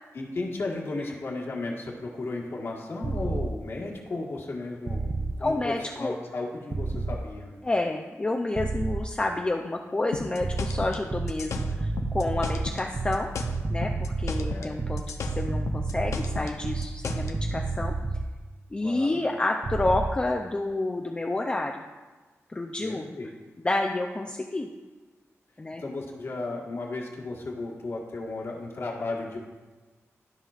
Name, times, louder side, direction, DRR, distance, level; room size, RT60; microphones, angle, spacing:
voice 1, 0.1-7.5 14.4-14.9 18.8-19.2 22.8-23.3 25.8-29.4, left 2 dB, 55° left, -2 dB, 1.5 m, -34 dB
sound 1, 3.0-3.5 4.9-5.3 6.7-7.2 8.6-9.0 10.4-18.3 19.6-20.1, right 3 dB, 35° right, 0.5 m, -30 dB
voice 2, 5.4-6.2 7.6-13.3 13.7-17.9 18.7-21.9 22.5-23.1 23.6-24.7 25.6-25.8, left 2 dB, 20° left, 2 dB, 0.4 m, -29 dB
sound 2, 10.1-12.9 13.1-14.7 15.0-17.3, left 5 dB, 75° left, 0.6 m, -35 dB
13.5 x 5.5 x 2.4 m, 1.3 s
wide cardioid pair, 125°, 5 cm